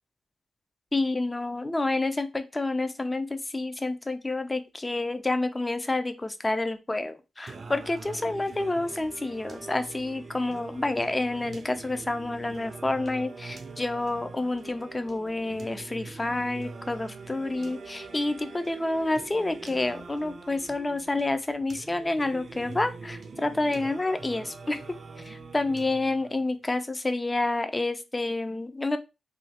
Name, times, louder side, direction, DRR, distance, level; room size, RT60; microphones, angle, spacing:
voice 1, 0.9-24.8 25.2-29.0, left 2 dB, 20° left, 9 dB, 0.4 m, -29 dB
Singing, 7.5-26.5, right 4 dB, 50° right, 0.4 m, -43 dB
3.0 x 2.2 x 2.8 m, 0.26 s
cardioid pair, 90°, 0 cm